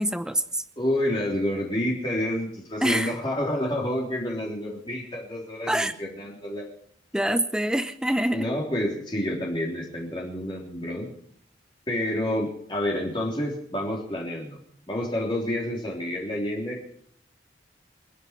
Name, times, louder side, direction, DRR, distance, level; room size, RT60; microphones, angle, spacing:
voice 1, 0.0-0.6 2.8-3.2 5.7-5.9 7.1-8.5, right 1 dB, 5° right, 10 dB, 0.8 m, -25 dB
voice 2, 0.8-6.7 8.3-11.1 11.9-14.6 14.9-16.8, left 1 dB, 25° left, -3 dB, 3.5 m, -29 dB
28.5 x 10.0 x 4.7 m, 0.66 s
head